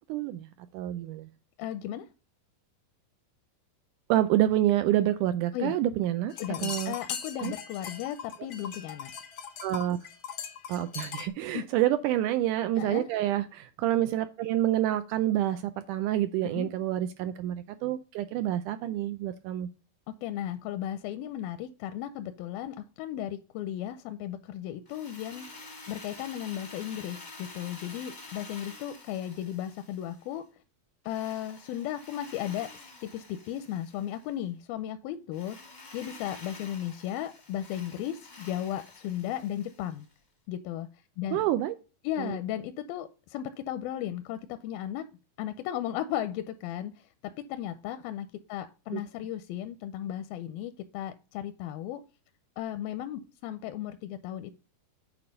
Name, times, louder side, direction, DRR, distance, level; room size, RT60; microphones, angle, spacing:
voice 1, 0.1-0.5 0.7-1.3 4.1-6.3 6.6-6.9 7.4-7.5 9.6-10.0 10.7-19.7 41.3-41.7 42.2-42.4 48.9-49.0, right 13 dB, 85° right, 1.8 m, -28 dB
voice 2, 1.6-2.1 5.5-5.8 6.4-9.1 11.5-11.7 12.8-13.1 16.5-16.7 20.1-30.5 31.1-40.1 40.5-40.9 41.2-41.5 42.0-45.1 45.4-47.1 47.5-52.0 52.6-54.5, left 11 dB, 85° left, 2.4 m, -35 dB
sound 1, 6.3-11.3, left 7 dB, 65° left, 1.3 m, -39 dB
Drill, 24.9-30.4 31.0-34.3 35.3-40.1, left 3 dB, 40° left, 0.6 m, -49 dB
8.8 x 4.7 x 5.2 m
omnidirectional pair, 4.2 m